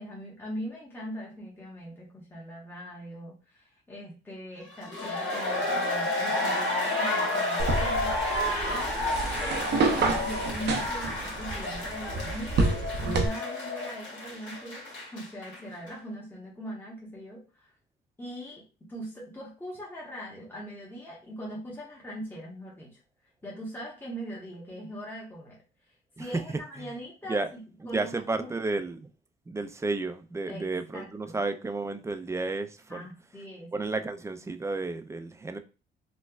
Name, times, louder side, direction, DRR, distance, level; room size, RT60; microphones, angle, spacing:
voice 1, 0.0-14.8 15.1-17.7 18.2-23.0 23.4-25.6 26.2-28.5 30.5-31.4 32.9-33.7, equal, 10° left, 1.0 m, -41 dB
sound 1, 4.7-15.6 15.9-16.0, left 2 dB, 75° left, 1.8 m, -30 dB
sound 2, 7.6-13.3, right 3 dB, 60° right, 0.7 m, -29 dB
voice 2, 27.8-29.1 29.5-33.0 33.7-35.6, right 3 dB, 15° right, 0.4 m, -32 dB
4.2 x 2.3 x 2.4 m
cardioid pair, 90°, 20 cm